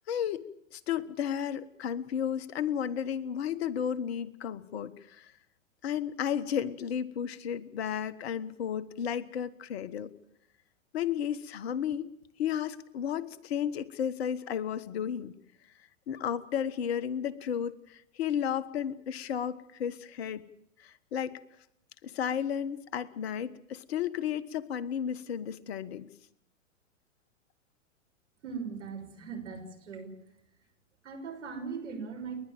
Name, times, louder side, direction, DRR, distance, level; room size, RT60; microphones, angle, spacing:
voice 1, 0.1-0.4 0.7-5.3 5.8-10.1 10.9-12.1 12.4-15.3 16.1-20.5 20.8-21.4 22.0-26.1, left 8 dB, 50° left, 15 dB, 1.4 m, -33 dB
voice 2, 28.4-30.2 31.0-32.4, right 5 dB, 65° right, 5 dB, 6.1 m, -39 dB
30.0 x 11.5 x 9.0 m, 0.77 s
figure-of-eight pair, 105°, 39 cm